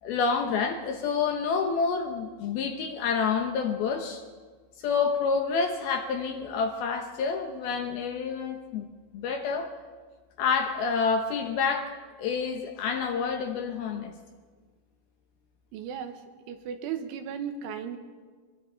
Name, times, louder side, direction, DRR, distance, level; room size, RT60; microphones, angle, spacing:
voice 1, 0.0-4.2 4.8-8.9 9.1-9.7 10.4-11.9 12.2-14.1, left 5 dB, 70° left, 5 dB, 2.4 m, -28 dB
voice 2, 15.7-16.2 16.5-18.0, right 8 dB, 85° right, 7 dB, 3.7 m, -35 dB
23.5 x 22.5 x 5.6 m, 1.5 s
omnidirectional pair, 5.4 m